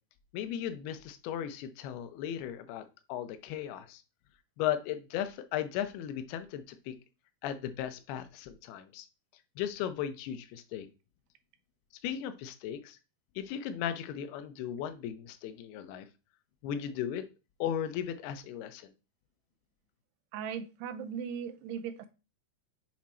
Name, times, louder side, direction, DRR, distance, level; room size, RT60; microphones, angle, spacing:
voice 1, 0.3-2.8 3.1-4.0 4.6-7.0 7.4-9.1 9.6-10.9 12.0-13.0 13.4-16.1 16.6-17.2 17.6-18.9, left 10 dB, 80° left, 10 dB, 2.5 m, -36 dB
voice 2, 20.3-22.1, right 7 dB, 85° right, 9 dB, 2.6 m, -38 dB
7.4 x 3.5 x 4.2 m, 0.31 s
omnidirectional pair, 4.9 m